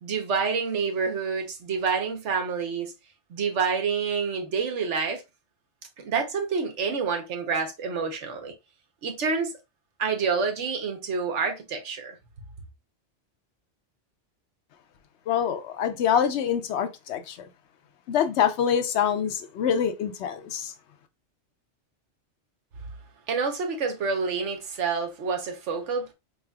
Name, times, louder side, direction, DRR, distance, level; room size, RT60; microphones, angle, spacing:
voice 1, 0.0-2.9 3.3-5.2 6.0-8.5 9.0-9.5 10.0-12.2 23.3-26.1, right 5 dB, 80° right, 1.2 m, -28 dB
voice 2, 15.3-17.4 18.1-20.7, left 8 dB, 70° left, 0.8 m, -25 dB
4.2 x 3.2 x 2.2 m
omnidirectional pair, 1.2 m